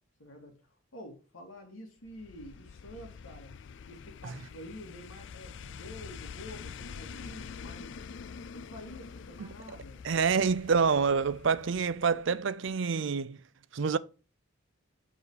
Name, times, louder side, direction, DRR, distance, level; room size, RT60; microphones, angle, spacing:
voice 1, 0.2-0.6 0.9-3.6 3.9-8.0 8.5-10.0, left 1 dB, 80° left, 2.7 m, -48 dB
sound 1, 2.0-12.4 12.7-12.8, left 6 dB, 60° left, 0.4 m, -46 dB
voice 2, 10.0-13.4 13.7-14.0, right 5 dB, 60° right, 0.5 m, -27 dB
7.3 x 6.2 x 4.9 m
head